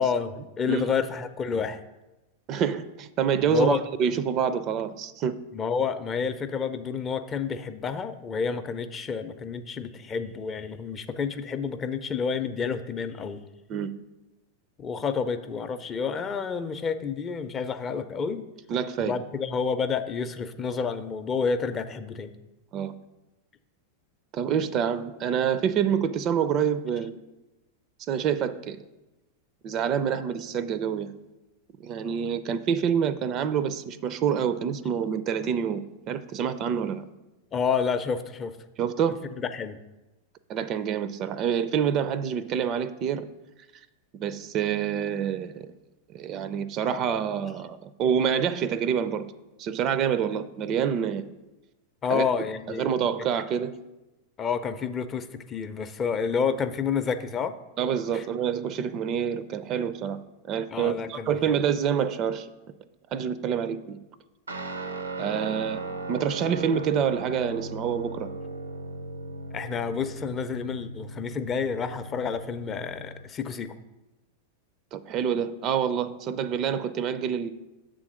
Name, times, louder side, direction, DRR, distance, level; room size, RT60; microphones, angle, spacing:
voice 1, 0.0-1.8 3.4-3.8 5.5-13.4 14.8-18.4 19.0-22.3 37.5-38.6 39.4-39.8 52.0-52.9 54.4-57.5 58.1-58.2 60.7-61.6 69.5-73.7, left 6 dB, 30° left, 10 dB, 0.5 m, -29 dB
voice 2, 2.5-5.4 13.7-13.9 18.7-19.2 22.7-22.9 24.3-27.1 28.1-28.8 29.6-31.1 31.8-37.0 38.8-39.2 40.5-43.3 44.1-45.7 46.1-49.3 49.6-51.3 52.1-52.3 52.7-53.8 57.8-60.2 60.5-62.5 63.1-64.0 65.2-65.8 66.1-68.3 74.9-77.5, right 8 dB, 40° right, 14 dB, 0.4 m, -27 dB
Guitar, 64.5-73.3, right 2 dB, 90° right, 0.6 m, -37 dB
7.2 x 3.8 x 6.3 m, 1.0 s
figure-of-eight pair, 95°, 0 cm